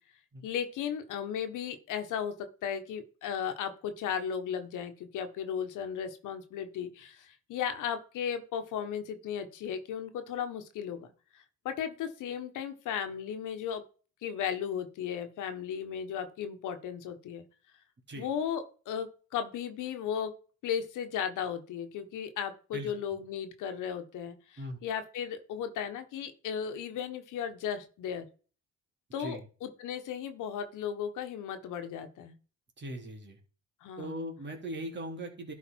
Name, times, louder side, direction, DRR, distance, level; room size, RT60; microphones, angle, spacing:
voice 1, 0.4-11.1 11.3-13.8 14.2-17.4 18.2-20.3 20.6-28.2 29.1-32.3 33.8-34.2, left 8 dB, 85° left, 8 dB, 1.5 m, -35 dB
voice 2, 22.7-23.2 24.6-24.8 29.2-29.5 32.8-33.4 34.0-35.5, right 1 dB, 35° right, 2 dB, 3.2 m, -39 dB
12.0 x 4.9 x 4.7 m, 0.36 s
cardioid pair, 90°, 30 cm